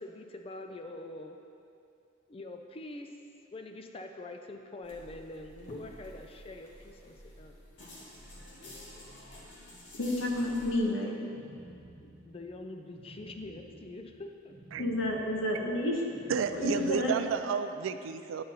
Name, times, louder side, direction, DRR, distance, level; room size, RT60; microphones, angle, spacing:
voice 1, 0.0-1.4 2.3-3.2 3.5-7.6 11.9-14.5, left 2 dB, 30° left, 4 dB, 0.4 m, -44 dB
sound 1, 4.8-10.7, left 1 dB, 65° left, 1.6 m, -50 dB
voice 2, 10.0-11.2 14.8-16.0 16.5-17.1, left 1 dB, 80° left, -2 dB, 1.1 m, -30 dB
sound 2, 11.3-17.6, right 1 dB, 45° right, 1.1 m, -53 dB
voice 3, 16.3-18.4, right 6 dB, 80° right, 11 dB, 0.3 m, -31 dB
9.5 x 3.9 x 4.1 m, 2.6 s
head